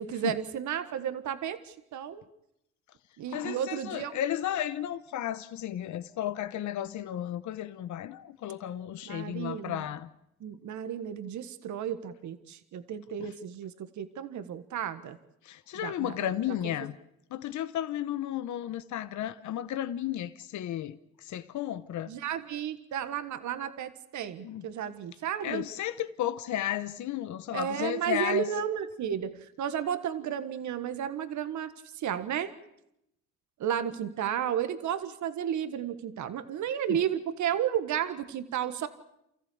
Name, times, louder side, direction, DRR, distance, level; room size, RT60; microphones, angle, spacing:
voice 1, 0.0-2.2 3.2-4.2 9.0-9.9 10.4-15.2 15.8-16.2 22.1-25.6 27.5-32.5 33.6-38.9, right 9 dB, 75° right, 1.5 m, -33 dB
voice 2, 3.3-10.1 13.2-13.3 15.4-17.0 17.3-22.1 24.4-24.6 25.4-28.5 36.9-37.0, left 11 dB, 70° left, 1.0 m, -33 dB
29.0 x 14.5 x 8.5 m
cardioid pair, 90°, 30 cm